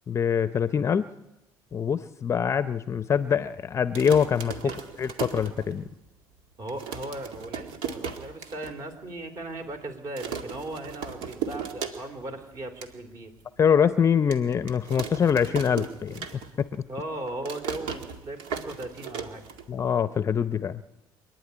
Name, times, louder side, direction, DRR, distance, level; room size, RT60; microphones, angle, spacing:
voice 1, 0.1-1.1 1.7-4.5 5.0-5.8 13.6-16.8 19.7-20.8, left 7 dB, 30° left, 13 dB, 0.6 m, -24 dB
sound 1, 3.8-6.1 6.4-6.5 6.7-8.7 9.1-9.2 9.4-9.8 10.2-12.3 12.6-12.9 13.4-13.5 14.3-16.7 17.0-20.0, right 7 dB, 75° right, 2.2 m, -36 dB
voice 2, 6.6-13.3 16.9-19.4, right 2 dB, 40° right, 6 dB, 3.6 m, -37 dB
26.0 x 10.5 x 9.7 m, 0.96 s
cardioid pair, 105°, 9 cm